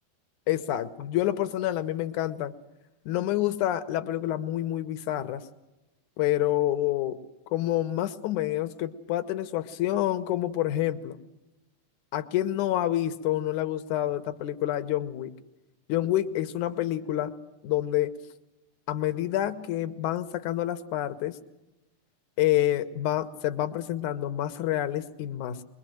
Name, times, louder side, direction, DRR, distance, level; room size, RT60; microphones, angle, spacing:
voice 1, 0.5-2.5 3.1-5.4 6.2-7.2 7.5-11.2 12.1-15.3 15.9-17.3 17.6-18.1 18.9-21.4 22.4-25.6, left 13 dB, 80° left, 9 dB, 1.8 m, -28 dB
23.5 x 22.5 x 7.7 m, 0.96 s
omnidirectional pair, 4.8 m